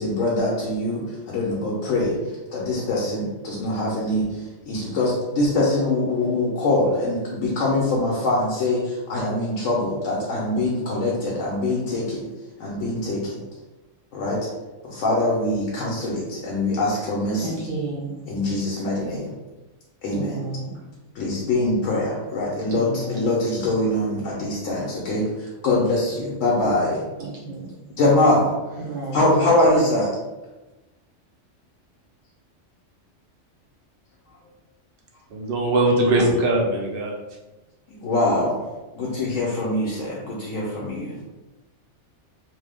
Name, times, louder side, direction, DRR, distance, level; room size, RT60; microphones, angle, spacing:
voice 1, 0.0-2.2 2.5-12.3 12.6-13.4 14.1-14.5 14.8-17.6 18.3-19.3 20.0-20.4 21.1-27.0 28.0-28.6 29.1-30.1 37.9-38.6 38.9-41.2, left 2 dB, 85° left, -4 dB, 1.0 m, -23 dB
voice 2, 17.4-18.1 20.1-20.8 22.7-23.3 27.2-27.7 28.8-29.2 29.5-29.6, right 2 dB, 80° right, -5 dB, 1.4 m, -32 dB
voice 3, 35.3-37.1, right 1 dB, 55° right, -1 dB, 0.8 m, -20 dB
3.1 x 2.0 x 3.4 m, 1.1 s
omnidirectional pair, 1.2 m